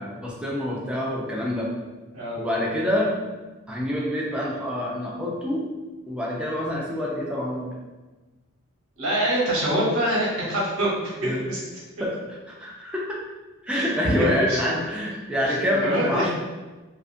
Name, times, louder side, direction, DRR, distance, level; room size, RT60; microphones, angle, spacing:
voice 1, 0.0-1.7 2.4-3.1 3.7-5.6 6.1-7.7 11.2-11.4 12.0-12.1 12.5-13.0 13.6-16.3, left 1 dB, 5° right, -5 dB, 0.5 m, -26 dB
voice 2, 9.0-11.6 13.7-14.1 14.5-14.6 15.7-16.2, right 1 dB, 75° right, -5 dB, 1.0 m, -25 dB
2.5 x 2.5 x 2.5 m, 1.2 s
head